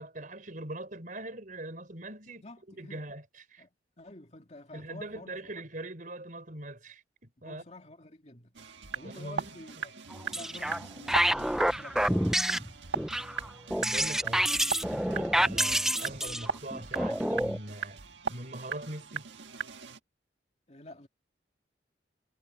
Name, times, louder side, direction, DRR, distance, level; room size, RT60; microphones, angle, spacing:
voice 1, 0.0-3.6 4.7-7.6 9.0-9.5 13.8-14.5 14.8-18.0 18.3-19.3, right 1 dB, 45° right, 4.7 m, -42 dB
voice 2, 2.4-3.0 3.6-5.5 7.4-8.5 8.9-10.0 10.3-12.5 20.7-21.1, left 2 dB, 35° left, 2.6 m, -50 dB
sound 1, 8.5-20.0, right 5 dB, 80° right, 1.6 m, -39 dB
sound 2, 10.1-10.8 11.1-17.6, right 1 dB, ahead, 0.4 m, -28 dB
head